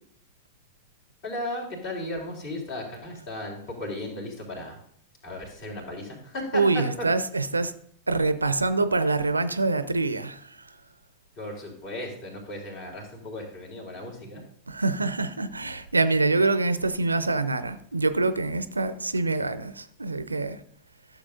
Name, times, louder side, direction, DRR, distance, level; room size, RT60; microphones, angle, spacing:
voice 1, 1.2-4.8 5.2-7.1 11.4-14.4, left 1 dB, 45° left, 3.3 m, -35 dB
voice 2, 6.5-7.7 8.1-10.7 14.7-20.6, right 3 dB, 80° right, 0.5 m, -25 dB
13.0 x 7.2 x 2.6 m
figure-of-eight pair, 90°, 0 cm